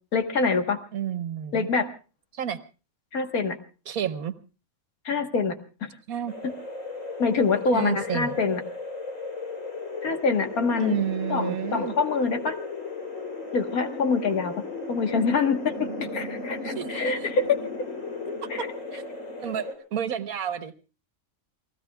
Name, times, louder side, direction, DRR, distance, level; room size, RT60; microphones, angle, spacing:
voice 1, 0.1-0.8 1.5-1.9 3.1-3.6 5.1-5.6 5.8-5.9 6.4-6.5 7.2-8.6 10.0-11.0 11.3-12.6 13.5-14.5 14.9-17.6 18.5-18.7, left 4 dB, 90° left, 6 dB, 2.0 m, -25 dB
voice 2, 0.9-1.7 2.3-2.6 3.9-4.3 6.1-6.3 7.7-8.3 10.8-11.9 16.6-17.3 18.9-19.0 19.4-20.7, right 9 dB, 85° right, 10 dB, 1.5 m, -30 dB
sound 1, 6.3-19.7, left 3 dB, 65° left, 4.2 m, -35 dB
29.5 x 18.5 x 2.4 m, 0.34 s
omnidirectional pair, 1.5 m